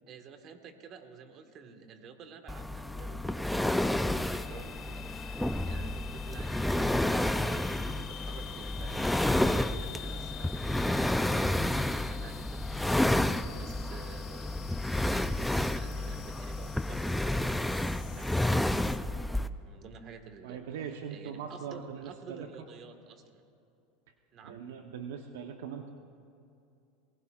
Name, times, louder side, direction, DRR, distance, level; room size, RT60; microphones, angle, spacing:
voice 1, 0.1-12.7 13.5-14.7 15.1-19.2 19.6-23.4 24.3-24.6, right 5 dB, 45° right, 6 dB, 1.7 m, -50 dB
sound 1, 2.5-19.5, left 1 dB, 5° left, 0.4 m, -30 dB
sound 2, 3.7-19.0, left 14 dB, 55° left, 0.8 m, -49 dB
voice 2, 20.4-22.5 24.4-25.9, right 7 dB, 80° right, 5 dB, 1.0 m, -41 dB
27.5 x 20.5 x 2.5 m, 2.6 s
supercardioid pair, 115°, 0 cm